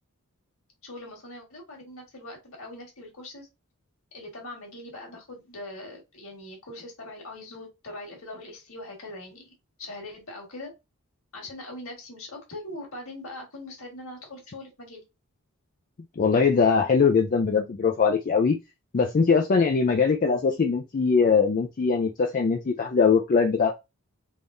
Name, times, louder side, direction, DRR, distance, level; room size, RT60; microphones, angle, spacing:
voice 1, 0.8-3.5 4.1-10.7 11.3-15.0, left 1 dB, 65° left, 1.7 m, -41 dB
voice 2, 16.2-18.6 18.9-23.7, left 5 dB, 40° left, 0.4 m, -21 dB
3.5 x 3.4 x 2.6 m
head